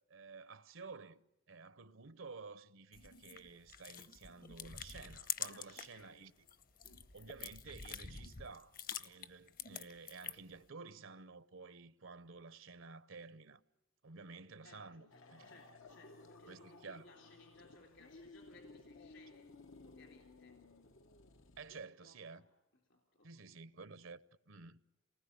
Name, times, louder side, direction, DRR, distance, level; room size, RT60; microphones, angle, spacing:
voice 1, 0.0-6.5 7.1-13.6 14.0-15.5 16.5-17.0 21.6-22.4 23.2-24.8, right 4 dB, 80° right, 1.0 m, -52 dB
sound 1, 2.9-6.0 6.4-10.6, left 8 dB, 45° left, 1.0 m, -46 dB
voice 2, 5.5-6.3 6.8-7.3 14.6-19.5 19.8-20.6 21.7-22.5 22.9-23.5, left 2 dB, 65° left, 3.6 m, -63 dB
sound 2, 15.1-21.9, left 3 dB, 90° left, 1.4 m, -58 dB
28.5 x 19.5 x 9.9 m
head